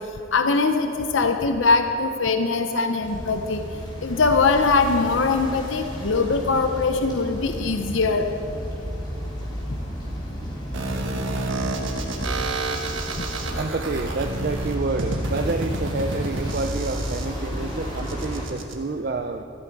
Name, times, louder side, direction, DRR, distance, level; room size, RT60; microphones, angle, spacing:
voice 1, 0.3-3.6 4.0-8.3, left 4 dB, 70° left, 6 dB, 0.7 m, -21 dB
sound 1, 3.0-18.5, equal, 20° left, 3.1 m, -33 dB
sound 2, 10.7-18.7, right 2 dB, 75° right, 1.2 m, -30 dB
voice 2, 13.5-19.4, right 3 dB, 45° right, 6 dB, 0.4 m, -28 dB
14.0 x 11.5 x 4.7 m, 2.7 s
head